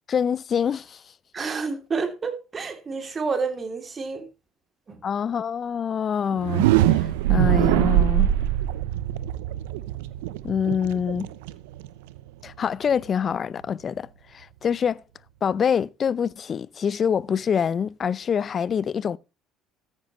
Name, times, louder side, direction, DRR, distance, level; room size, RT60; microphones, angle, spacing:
voice 1, 0.1-1.0 5.0-8.3 10.4-11.3 12.4-14.1 14.3-15.0 15.4-19.2, left 7 dB, 45° left, 0.6 m, -25 dB
voice 2, 1.3-4.3 4.9-5.0, right 4 dB, 35° right, 3.0 m, -29 dB
sound 1, 6.3-12.2, right 13 dB, 80° right, 0.7 m, -23 dB
13.5 x 9.9 x 3.1 m
hypercardioid pair, 65°, 0 cm